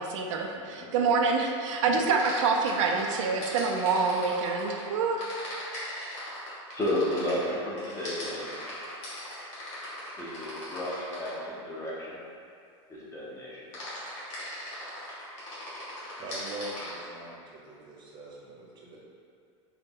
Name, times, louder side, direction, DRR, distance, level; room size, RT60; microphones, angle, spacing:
voice 1, 0.0-5.3, right 4 dB, 80° right, 2 dB, 0.4 m, -26 dB
sound 1, 2.2-4.8 5.2-11.4 13.7-16.9, left 1 dB, 45° left, 1.4 m, -39 dB
voice 2, 6.7-8.5 10.2-12.2 12.9-13.7, left 1 dB, 20° left, -7 dB, 0.9 m, -32 dB
voice 3, 16.2-19.0, right 2 dB, 30° right, -4 dB, 0.8 m, -42 dB
3.7 x 2.2 x 3.7 m, 2.4 s
supercardioid pair, 130°, 16 cm